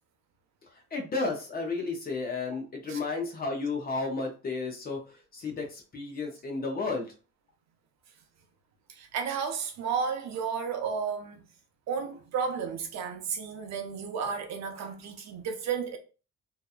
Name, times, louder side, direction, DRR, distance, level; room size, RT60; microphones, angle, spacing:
voice 1, 0.7-7.1, left 3 dB, 30° left, 0.6 m, -33 dB
voice 2, 8.9-11.4 11.9-16.0, right 6 dB, 60° right, 0.6 m, -33 dB
2.8 x 2.2 x 2.3 m
cardioid pair, 160°, 30 cm